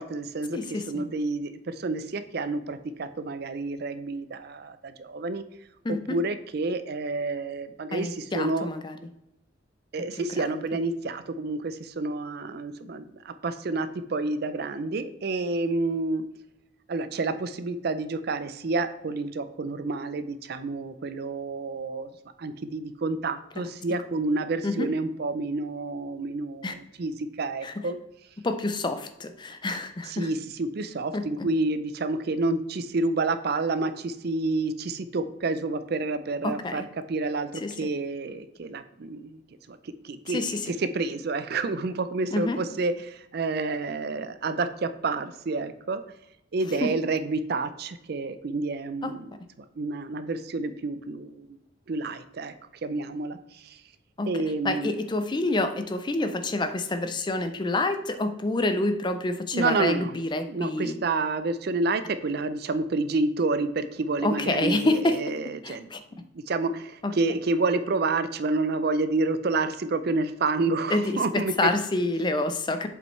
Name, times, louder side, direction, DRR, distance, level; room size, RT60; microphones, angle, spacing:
voice 1, 0.0-0.6 0.9-5.4 5.9-8.7 9.9-16.2 16.9-22.1 22.4-28.0 30.1-39.4 39.7-40.4 40.7-46.0 46.5-49.3 49.8-51.6 51.9-52.5 52.8-53.8 54.3-54.9 59.5-60.2 60.5-65.9 66.2-71.7, right 3 dB, 50° right, 11 dB, 0.4 m, -29 dB
voice 2, 0.5-1.0 5.8-6.2 7.9-9.0 10.4-10.6 23.6-23.7 24.6-24.9 26.6-26.7 27.6-27.7 28.4-30.3 31.1-31.2 36.4-36.9 37.6-37.7 40.3-40.6 42.3-42.6 46.8-46.9 49.0-49.1 54.2-54.3 54.6-61.0 64.2-65.2 65.6-66.0 67.0-67.1 70.9-71.2 71.6-72.9, left 2 dB, 25° left, 9 dB, 0.4 m, -27 dB
7.4 x 5.3 x 3.2 m, 0.85 s
head